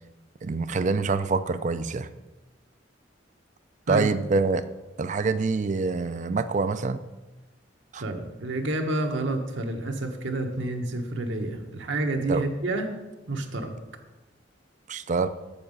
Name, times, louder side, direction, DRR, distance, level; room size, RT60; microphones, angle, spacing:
voice 1, 0.4-2.1 3.9-4.6 5.0-7.0 7.9-8.0 12.3-12.4 14.9-15.3, right 4 dB, 40° right, 12 dB, 0.4 m, -25 dB
voice 2, 8.0-12.9 13.3-13.7, right 2 dB, 80° right, 4 dB, 1.1 m, -29 dB
7.0 x 6.9 x 5.4 m, 1.1 s
head